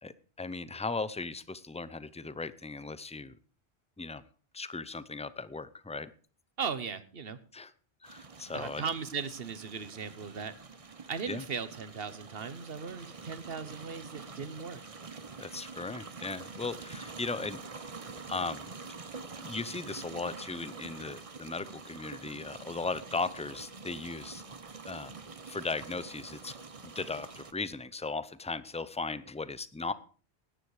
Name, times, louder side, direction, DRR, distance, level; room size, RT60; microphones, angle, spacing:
voice 1, 0.0-3.4 4.0-4.2 4.5-6.1 7.5-7.7 8.0-8.8 11.3-11.4 15.4-17.9 18.3-18.7 19.4-24.4 24.9-25.1 25.5-26.6 26.8-29.9, left 3 dB, 10° left, 16 dB, 0.5 m, -37 dB
voice 2, 6.6-7.4 8.5-10.5 11.1-14.8, right 6 dB, 60° right, 13 dB, 1.3 m, -37 dB
sound 1, 8.0-27.5, right 4 dB, 35° right, 0.9 m, -46 dB
17.5 x 9.9 x 4.9 m, 0.40 s
omnidirectional pair, 1.1 m